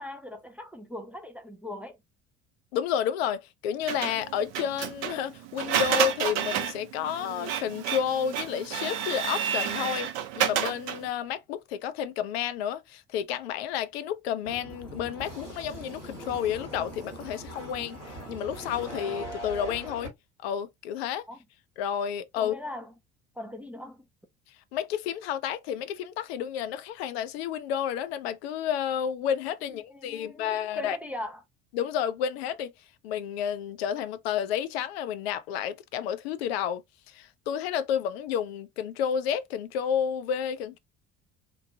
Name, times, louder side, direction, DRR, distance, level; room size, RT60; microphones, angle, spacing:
voice 1, 0.0-2.0 21.3-21.4 22.4-22.9 23.4-24.0 29.7-31.4, left 1 dB, 5° right, 0.3 m, -40 dB
voice 2, 2.7-20.1 20.4-21.3 21.8-22.5 24.7-31.0 31.7-32.7 33.0-40.8, left 9 dB, 60° left, 0.4 m, -31 dB
Printer, 3.9-11.1, right 9 dB, 55° right, 0.6 m, -30 dB
sound 1, 14.4-20.1, right 1 dB, 85° left, 1.1 m, -41 dB
3.0 x 2.1 x 2.6 m
figure-of-eight pair, 55°, 35 cm